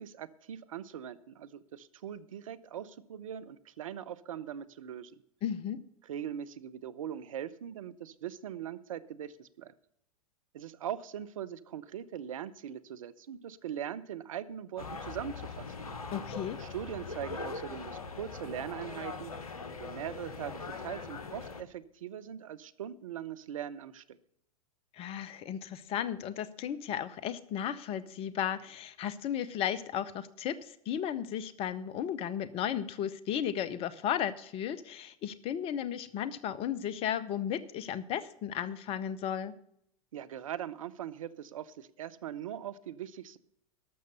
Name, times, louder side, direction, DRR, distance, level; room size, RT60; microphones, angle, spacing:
voice 1, 0.0-5.1 6.0-9.7 10.5-15.7 16.6-19.3 19.8-24.2 40.1-43.4, right 10 dB, 65° right, 14 dB, 0.7 m, -41 dB
voice 2, 5.4-5.8 16.1-16.6 24.9-39.5, left 9 dB, 30° left, 16 dB, 0.7 m, -34 dB
sound 1, 14.8-21.6, left 4 dB, 75° left, 1.0 m, -41 dB
12.5 x 6.6 x 6.5 m, 0.74 s
figure-of-eight pair, 95°, 19 cm